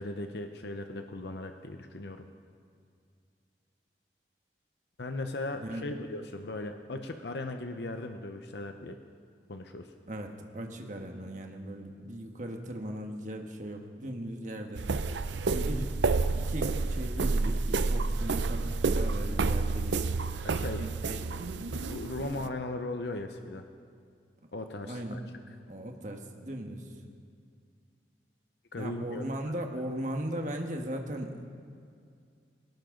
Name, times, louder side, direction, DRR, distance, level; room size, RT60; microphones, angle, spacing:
voice 1, 0.0-2.3 5.0-9.0 9.5-9.9 20.4-20.8 21.9-23.6 24.5-25.2 28.7-29.2, left 2 dB, 70° left, 6 dB, 0.8 m, -38 dB
voice 2, 10.1-14.8 15.5-15.9 16.3-20.2 20.8-21.3 24.9-25.2 25.7-26.8 28.8-31.4, right 1 dB, 45° right, 3 dB, 1.5 m, -38 dB
sound 1, 14.8-22.5, right 3 dB, 85° right, 0.6 m, -29 dB
20.5 x 18.0 x 3.9 m, 2.3 s
head